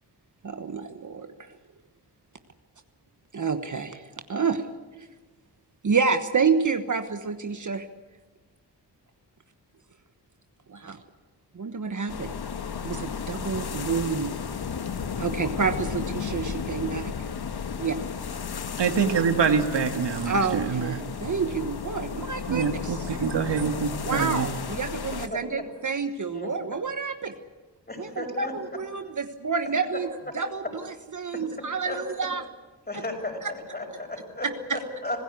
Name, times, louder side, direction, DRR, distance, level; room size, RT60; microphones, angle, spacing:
voice 1, 0.4-1.6 3.3-4.7 5.0-5.1 5.8-7.9 10.7-11.0 11.5-12.3 12.8-14.4 15.2-17.1 17.8-18.0 20.2-23.1 24.0-27.3 28.0-30.1 30.3-32.4 32.9-33.0 33.4-33.5 34.7-34.8, right 5 dB, 45° right, 1.3 m, -29 dB
sound 1, 12.1-25.3, left 6 dB, 65° left, 1.4 m, -34 dB
voice 2, 18.8-21.0 21.2-21.3 22.5-24.5, right 6 dB, 85° right, 1.9 m, -25 dB
voice 3, 25.3-25.6 26.2-26.5 27.9-28.5 31.8-32.0 32.9-35.2, left 2 dB, 25° left, 6.2 m, -34 dB
26.0 x 15.5 x 8.4 m
cardioid pair, 60°, 41 cm